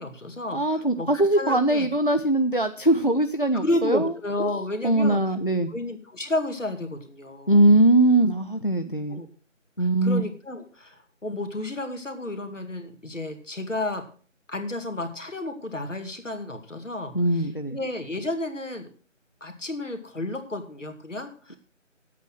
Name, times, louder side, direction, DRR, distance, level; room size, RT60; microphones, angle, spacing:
voice 1, 0.0-1.1 1.4-1.9 3.6-5.2 5.7-7.6 9.1-9.3 9.8-14.0 14.5-18.9 19.4-21.6, left 2 dB, 70° left, 7 dB, 2.2 m, -31 dB
voice 2, 0.5-4.1 4.4-4.5 4.8-5.7 7.5-9.2 9.8-10.2 17.1-17.8, right 1 dB, 45° left, 9 dB, 0.5 m, -21 dB
9.5 x 8.4 x 6.3 m, 0.41 s
figure-of-eight pair, 180°, 38 cm